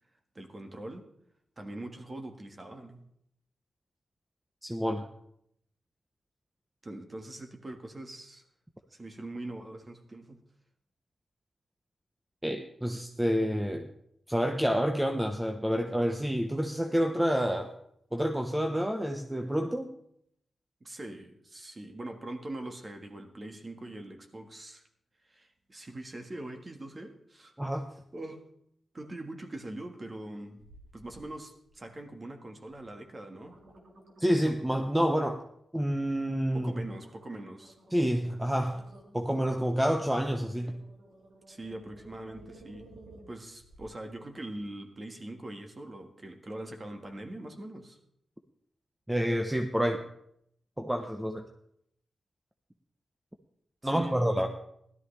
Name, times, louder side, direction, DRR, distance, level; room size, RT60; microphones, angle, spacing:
voice 1, 0.3-1.1 1.6-3.0 6.8-8.4 8.9-10.4 20.8-24.8 25.2-27.5 28.1-28.4 28.9-30.6 30.9-33.6 36.5-37.8 41.5-43.0 43.3-48.0 53.8-54.5, right 1 dB, 30° right, 5 dB, 1.7 m, -42 dB
voice 2, 4.6-5.1 12.4-13.9 14.3-17.7 18.1-19.9 27.6-27.9 34.2-35.4 35.7-36.7 37.9-38.8 39.1-40.8 49.1-50.1 50.8-51.4 53.8-54.5, equal, 5° right, 4 dB, 0.8 m, -28 dB
sound 1, 30.6-31.2 31.6-32.1 32.7-32.8 33.2-35.5 35.9-36.1 36.5-44.0 44.5-44.6, right 1 dB, 70° right, 2.5 m, -55 dB
16.5 x 12.5 x 3.3 m, 0.71 s
wide cardioid pair, 100°, 0 cm